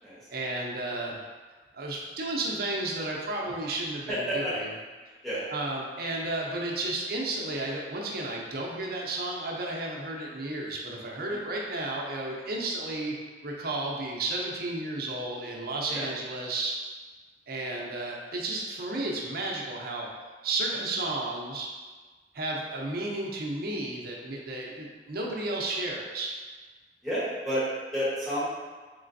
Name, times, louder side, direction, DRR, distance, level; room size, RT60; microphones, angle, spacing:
voice 1, 0.3-1.2 1.7-4.7 5.5-13.1 13.4-16.8 17.5-20.1 20.4-21.7 22.3-26.3, right 2 dB, 55° right, -2 dB, 0.6 m, -32 dB
voice 2, 4.1-4.5 5.2-5.4 11.3-11.4 15.9-16.1 20.7-20.8 27.0-27.6 27.9-28.5, equal, ahead, -10 dB, 1.1 m, -30 dB
3.6 x 3.2 x 2.6 m, 1.4 s
head